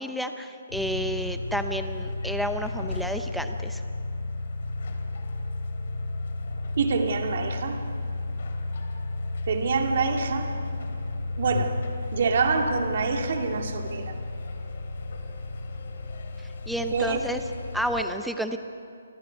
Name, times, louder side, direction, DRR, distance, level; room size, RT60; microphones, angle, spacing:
voice 1, 0.0-3.8 16.7-17.4 17.7-18.6, equal, ahead, 6 dB, 0.7 m, -30 dB
sound 1, 0.7-18.1, left 2 dB, 45° left, 2.9 m, -33 dB
voice 2, 6.8-7.8 9.5-10.5 11.4-11.8 12.1-14.1 16.9-17.2, right 5 dB, 45° right, 4 dB, 2.4 m, -26 dB
29.0 x 24.0 x 5.4 m, 2.4 s
hypercardioid pair, 175°, 0 cm